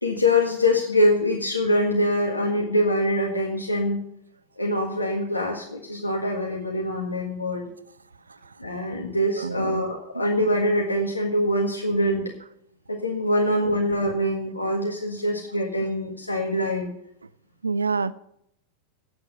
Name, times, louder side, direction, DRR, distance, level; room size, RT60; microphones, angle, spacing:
voice 1, 0.0-4.0 4.6-7.6 8.6-12.2 12.9-16.9, left 1 dB, 85° left, -1 dB, 1.7 m, -24 dB
voice 2, 9.4-9.8 17.6-18.1, right 4 dB, 75° right, 17 dB, 0.5 m, -26 dB
8.7 x 8.0 x 9.2 m, 0.74 s
figure-of-eight pair, 90°, 0 cm